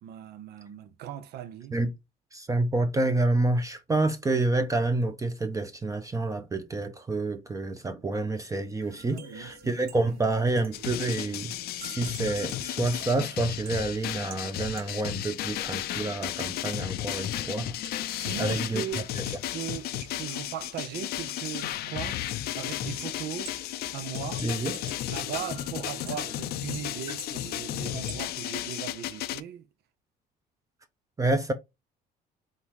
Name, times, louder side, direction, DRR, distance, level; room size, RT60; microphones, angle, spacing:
voice 1, 0.0-1.8 7.9-8.0 9.1-9.5 10.0-10.2 17.4-17.7 18.2-22.2 22.6-23.6 23.9-24.4 25.0-29.7, right 10 dB, 75° right, 0.7 m, -39 dB
voice 2, 2.3-17.7 18.4-18.8 19.2-19.3 24.4-24.8 31.2-31.5, right 2 dB, 20° right, 0.6 m, -28 dB
sound 1, 8.8-28.3, right 4 dB, 60° right, 1.2 m, -50 dB
sound 2, 10.7-29.4, left 13 dB, 70° left, 0.5 m, -34 dB
4.1 x 3.8 x 3.0 m
cardioid pair, 110°, 17 cm